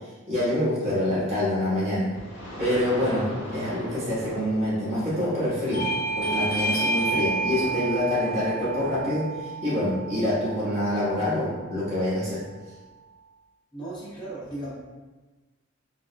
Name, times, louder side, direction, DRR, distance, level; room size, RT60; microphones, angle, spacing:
voice 1, 0.3-2.1 2.6-5.9 6.1-12.4, left 1 dB, 30° right, -11 dB, 1.3 m, -26 dB
sound 1, 2.1-9.1, equal, 70° left, 0.8 m, -40 dB
Bell / Doorbell, 5.7-10.9, right 2 dB, 45° left, 0.4 m, -29 dB
voice 2, 13.7-14.7, right 2 dB, 20° left, -9 dB, 1.0 m, -36 dB
4.5 x 2.3 x 2.2 m, 1.2 s
head